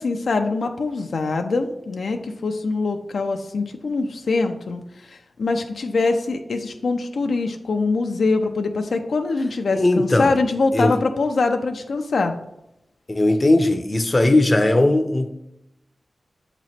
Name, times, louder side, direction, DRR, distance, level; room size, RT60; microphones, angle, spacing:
voice 1, 0.0-12.4, left 3 dB, 85° left, 5 dB, 0.5 m, -23 dB
voice 2, 9.7-10.3 10.7-11.0 13.1-15.3, left 2 dB, 30° left, 7 dB, 0.6 m, -18 dB
7.3 x 3.0 x 4.2 m, 0.84 s
wide cardioid pair, 75°, 0 cm